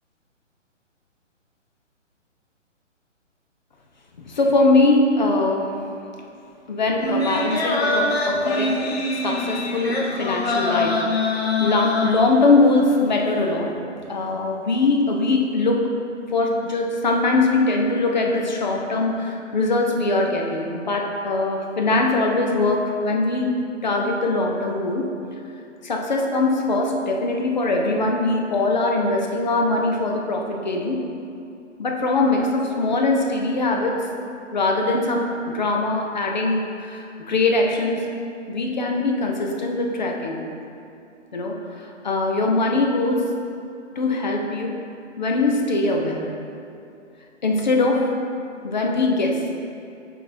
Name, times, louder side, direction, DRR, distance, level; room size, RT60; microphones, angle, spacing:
voice 1, 4.2-5.7 6.7-15.9 16.3-23.5 23.8-25.1 25.8-31.0 31.8-34.0 34.5-38.1 38.5-40.4 41.3-43.3 44.0-44.8 45.2-46.4 47.4-48.2 48.6-49.4, left 2 dB, 35° left, 1 dB, 0.5 m, -22 dB
sound 1, 7.0-12.6 13.0-13.1, left 2 dB, 55° left, 0.9 m, -24 dB
6.3 x 3.6 x 4.3 m, 2.6 s
hypercardioid pair, 160°, 38 cm